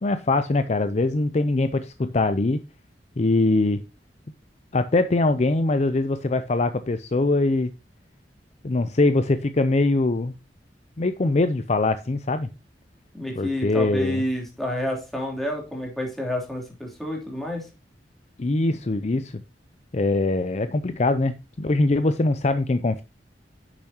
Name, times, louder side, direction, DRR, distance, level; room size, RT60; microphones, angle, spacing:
voice 1, 0.0-2.6 3.2-3.8 4.7-7.7 8.6-10.3 11.0-12.5 13.4-14.2 18.4-19.3 19.9-23.0, left 2 dB, 40° left, 11 dB, 0.5 m, -22 dB
voice 2, 13.1-17.6, left 1 dB, ahead, -1 dB, 3.2 m, -29 dB
10.0 x 7.1 x 2.8 m, 0.29 s
head